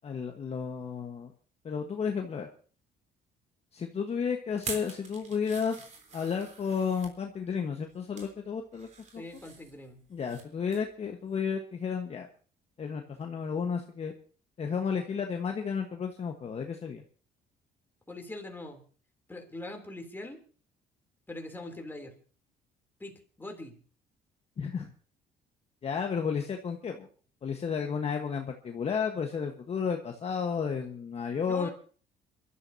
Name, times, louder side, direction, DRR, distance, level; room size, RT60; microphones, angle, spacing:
voice 1, 0.0-1.3 1.6-2.5 3.7-5.8 6.1-9.2 10.1-12.3 12.8-14.1 14.6-17.0 24.6-24.9 25.8-27.1 27.4-31.7, left 6 dB, 40° left, 3 dB, 1.4 m, -32 dB
sound 1, 4.5-7.1 7.8-8.3 8.7-10.4 10.7-10.9 11.3-11.4, right 4 dB, 45° right, 3.8 m, -44 dB
voice 2, 9.2-10.0 18.1-18.8 19.3-20.4 21.3-22.1 23.0-23.8 31.4-31.7, left 2 dB, 10° left, 3 dB, 3.2 m, -42 dB
27.5 x 12.5 x 2.8 m, 0.41 s
cardioid pair, 110°, 17 cm